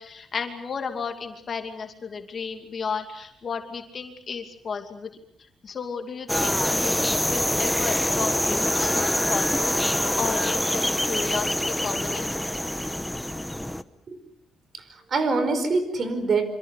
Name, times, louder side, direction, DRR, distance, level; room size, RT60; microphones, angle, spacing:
voice 1, 0.0-5.1 5.6-12.3, left 5 dB, 40° left, 5 dB, 2.6 m, -33 dB
sound 1, 6.3-13.8, left 1 dB, 5° left, 1.1 m, -25 dB
voice 2, 14.7-16.5, right 3 dB, 45° right, 11 dB, 4.8 m, -25 dB
27.0 x 26.0 x 6.6 m, 0.72 s
cardioid pair, 125°, 0 cm